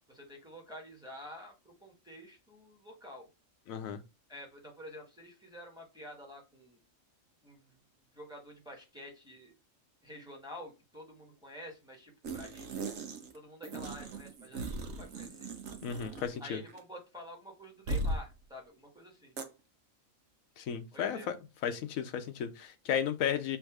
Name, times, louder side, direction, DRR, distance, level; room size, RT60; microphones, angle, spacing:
voice 1, 0.1-3.3 4.3-6.8 7.4-7.8 8.1-9.5 10.0-12.9 13.3-15.5 16.4-19.3 20.9-21.3, left 1 dB, 5° right, 1.0 m, -49 dB
voice 2, 3.7-4.0 15.8-16.6 20.6-21.3 21.6-23.6, left 8 dB, 90° left, 1.1 m, -34 dB
sound 1, 12.2-13.4 13.6-16.4 16.7-16.8 17.9-18.3 19.4-19.5, right 2 dB, 75° right, 1.2 m, -38 dB
3.5 x 2.7 x 4.6 m
omnidirectional pair, 1.4 m